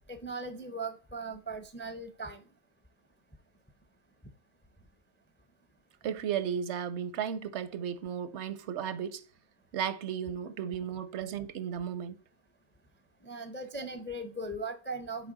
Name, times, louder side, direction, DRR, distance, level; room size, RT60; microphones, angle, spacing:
voice 1, 0.1-2.4 13.2-15.3, right 2 dB, 15° left, 0.3 m, -39 dB
voice 2, 6.0-9.2 9.7-12.2, right 8 dB, 80° right, 0.9 m, -34 dB
6.3 x 4.3 x 3.8 m
omnidirectional pair, 1.2 m